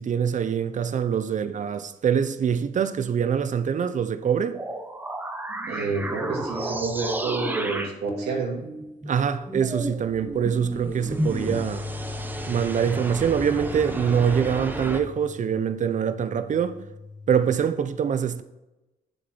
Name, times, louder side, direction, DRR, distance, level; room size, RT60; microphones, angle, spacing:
voice 1, 0.0-4.6 9.1-11.9 12.5-16.8 17.3-18.4, right 7 dB, 50° right, 0.8 m, -24 dB
sound 1, 4.5-15.0, right 1 dB, 10° right, 1.1 m, -32 dB
voice 2, 5.7-8.7, right 4 dB, 75° right, 2.5 m, -29 dB
Bass guitar, 11.3-17.6, left 3 dB, 20° left, 0.9 m, -39 dB
8.0 x 7.3 x 4.6 m
cardioid pair, 75°, 17 cm